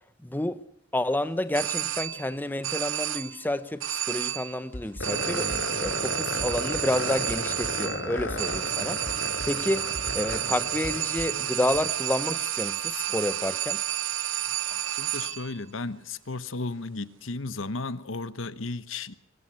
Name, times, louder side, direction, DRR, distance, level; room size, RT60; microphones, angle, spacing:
voice 1, 0.2-0.6 0.9-5.5 5.8-9.8 10.1-13.8, left 1 dB, 10° left, 0.9 m, -30 dB
sound 1, 1.5-2.4 2.6-3.5 3.8-4.6 5.0-15.6, right 12 dB, 80° right, 0.9 m, -31 dB
sound 2, 4.7-5.2 5.5-6.1 6.4-7.0 7.3-7.9 8.2-11.8, left 1 dB, 45° left, 4.3 m, -40 dB
sound 3, 5.0-11.4, left 2 dB, 70° left, 3.2 m, -34 dB
voice 2, 14.7-19.1, left 3 dB, 85° left, 1.1 m, -34 dB
23.0 x 19.5 x 8.2 m
head